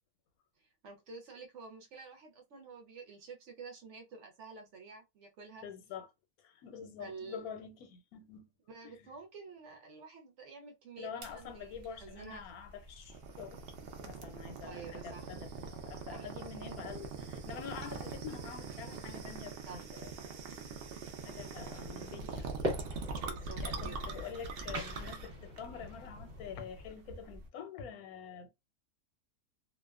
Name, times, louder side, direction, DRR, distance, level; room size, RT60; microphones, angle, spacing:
voice 1, 0.6-5.7 7.0-7.4 8.7-12.5 14.6-15.3 16.1-16.3 19.7-19.8 23.2-24.0, right 4 dB, 60° right, 0.8 m, -49 dB
voice 2, 5.6-6.1 6.4-8.5 8.8-9.1 11.0-13.6 14.0-20.6 21.2-22.5 23.6-28.5, left 7 dB, 80° left, 1.1 m, -46 dB
sound 1, 11.2-27.5, right 4 dB, 80° right, 0.5 m, -43 dB
sound 2, 21.3-26.9, equal, 40° right, 1.1 m, -43 dB
2.6 x 2.1 x 2.3 m
omnidirectional pair, 1.6 m